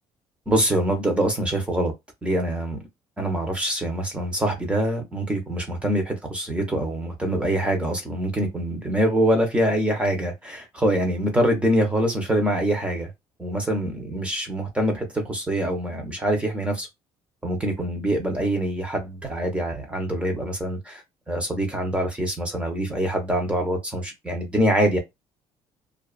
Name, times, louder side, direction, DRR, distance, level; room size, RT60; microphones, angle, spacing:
voice 1, 0.5-1.9 2.2-2.8 3.2-13.1 13.4-16.9 17.4-25.0, right 1 dB, 10° right, 0.9 m, -24 dB
2.4 x 2.3 x 2.4 m
cardioid pair, 140°, 11 cm